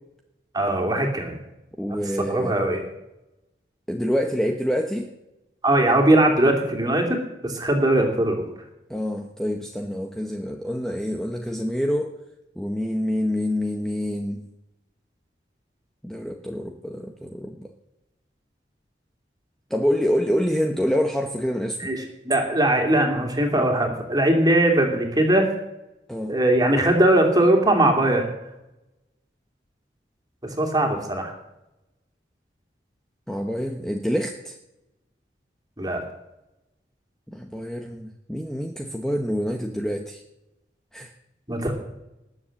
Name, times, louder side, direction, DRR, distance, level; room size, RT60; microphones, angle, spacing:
voice 1, 0.5-1.4 2.2-2.9 5.6-8.4 21.8-25.5 26.3-28.2 30.4-31.3 35.8-36.0 41.5-41.8, right 1 dB, 20° right, 3 dB, 2.8 m, -20 dB
voice 2, 1.8-2.5 3.9-5.1 8.9-12.1 12.6-14.4 16.0-17.7 19.7-21.9 26.1-26.4 33.3-34.6 37.3-40.2 40.9-41.1, equal, 5° left, 2 dB, 0.9 m, -26 dB
19.5 x 7.2 x 7.6 m, 0.92 s
head